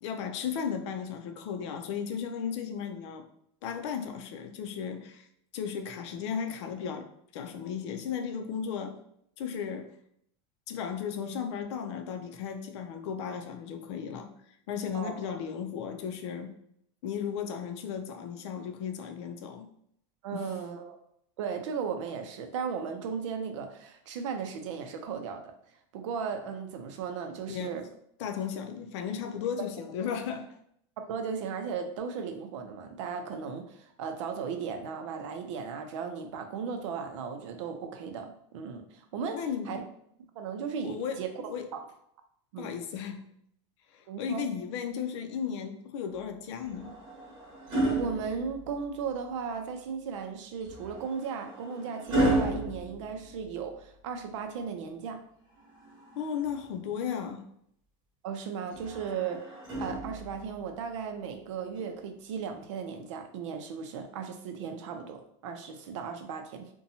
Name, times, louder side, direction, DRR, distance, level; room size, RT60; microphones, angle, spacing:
voice 1, 0.0-3.3 3.6-5.3 5.5-9.0 9.4-9.9 10.7-14.3 14.7-16.5 17.0-19.7 20.3-20.5 27.5-27.7 28.2-30.5 39.3-39.8 40.8-41.7 42.6-43.2 43.9-46.9 56.2-57.5, left 7 dB, 70° left, 0.4 m, -35 dB
voice 2, 14.9-15.4 20.2-21.0 21.4-25.5 25.9-27.8 31.1-39.8 40.4-41.4 41.7-41.8 42.5-42.8 44.1-44.4 47.7-55.2 58.2-59.5 59.8-66.7, right 6 dB, 85° right, 0.5 m, -36 dB
sound 1, 46.6-49.0 50.6-53.8 55.6-56.7 58.7-60.5 61.8-62.0, right 1 dB, 30° right, 0.9 m, -33 dB
2.7 x 2.2 x 2.7 m
supercardioid pair, 155°, 15 cm